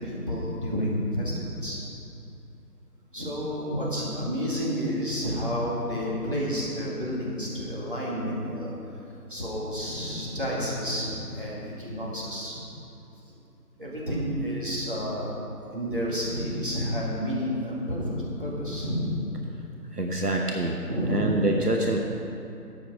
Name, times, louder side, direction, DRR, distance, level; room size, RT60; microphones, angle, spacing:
voice 1, 0.0-1.9 3.1-8.8 9.3-12.6 13.3-13.4 13.8-15.3 15.7-19.1 20.8-21.4, equal, 30° right, -6 dB, 2.0 m, -30 dB
voice 2, 19.9-20.8 21.1-22.0, right 2 dB, 70° right, 1 dB, 1.1 m, -25 dB
12.5 x 8.5 x 4.8 m, 2.8 s
figure-of-eight pair, 175°, 48 cm